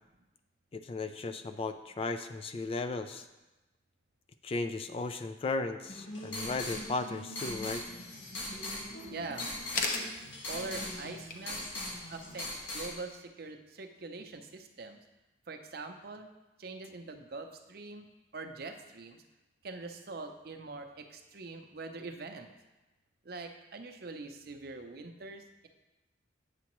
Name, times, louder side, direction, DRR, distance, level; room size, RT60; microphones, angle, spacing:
voice 1, 0.7-3.3 4.4-7.9, left 3 dB, 30° left, 9 dB, 0.3 m, -35 dB
sound 1, 5.8-12.9, left 1 dB, 80° left, 1.6 m, -40 dB
sound 2, 7.6-12.7, left 3 dB, 45° left, 0.7 m, -41 dB
voice 2, 9.1-9.6 10.5-11.6 12.1-15.0 15.5-16.3 16.6-18.1 18.3-19.2 19.6-22.5 23.2-25.7, right 3 dB, 55° right, 5 dB, 0.6 m, -43 dB
8.3 x 6.8 x 3.0 m, 1.0 s
head